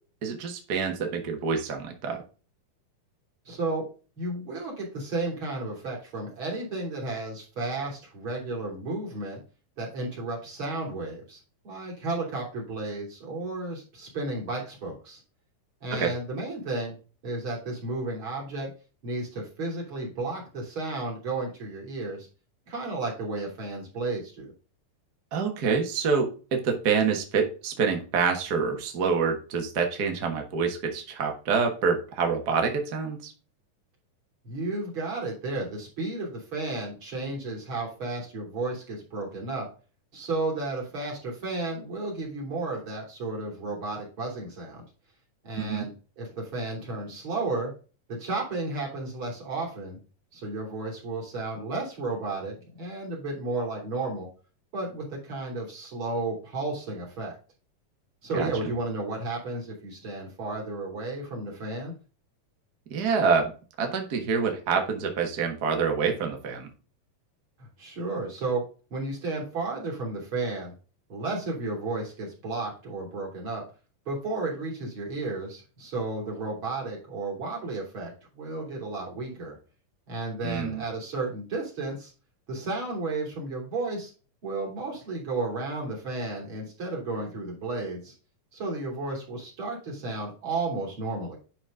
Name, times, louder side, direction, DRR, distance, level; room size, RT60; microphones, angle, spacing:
voice 1, 0.2-2.2 15.9-16.1 25.3-33.3 45.6-45.9 58.3-58.5 62.9-63.5 63.8-66.7 80.4-80.8, right 5 dB, 55° right, 3 dB, 1.0 m, -26 dB
voice 2, 3.5-3.9 4.2-9.4 9.8-11.4 11.6-15.2 15.8-17.0 17.2-18.7 19.0-22.3 22.7-24.5 34.4-39.7 40.1-44.8 45.4-47.7 48.1-50.0 50.3-54.3 54.7-57.4 58.2-61.9 67.8-68.6 68.9-70.7 71.1-73.6 74.1-79.6 80.1-82.1 82.5-84.1 84.4-88.1 88.5-91.4, right 2 dB, 35° right, -2 dB, 3.6 m, -33 dB
11.0 x 4.2 x 3.8 m, 0.36 s
omnidirectional pair, 4.0 m